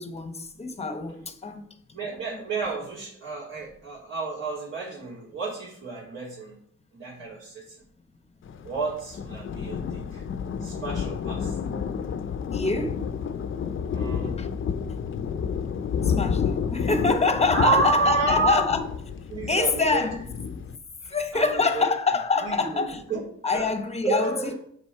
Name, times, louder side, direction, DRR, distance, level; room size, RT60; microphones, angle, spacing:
voice 1, 0.0-2.0 2.3-2.4 12.5-13.1 14.4-14.5 16.0-18.8 19.4-20.2 21.0-23.0 23.4-24.5, left 4 dB, 20° left, 1.0 m, -26 dB
voice 2, 1.9-6.6 6.9-7.8 8.6-10.2 10.6-11.6 13.9-14.4 17.5-18.6 19.3-20.0 21.0-21.9 22.4-23.2 23.5-23.7 24.0-24.5, right 4 dB, 55° right, 2.7 m, -30 dB
Thunder, 8.4-20.8, left 6 dB, 45° left, 0.6 m, -30 dB
6.1 x 5.3 x 4.7 m
cardioid pair, 90°, 30 cm